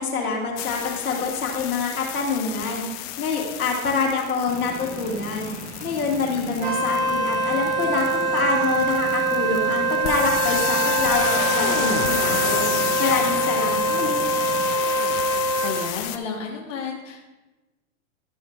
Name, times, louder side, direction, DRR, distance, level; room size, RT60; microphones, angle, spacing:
voice 1, 0.0-2.8 3.2-5.5 5.8-12.7 13.0-14.2, left 4 dB, 80° left, -1 dB, 1.9 m, -26 dB
sound 1, 0.6-16.2, left 12 dB, 35° left, 0.5 m, -31 dB
sound 2, 4.5-14.8, right 3 dB, 20° right, 1.0 m, -38 dB
Wind instrument woodwind instrument, 6.6-15.9, right 2 dB, 65° right, 1.6 m, -24 dB
voice 2, 15.3-17.2, left 5 dB, 60° left, -1 dB, 1.3 m, -32 dB
12.5 x 6.3 x 2.3 m, 1.1 s
hypercardioid pair, 110°, 43 cm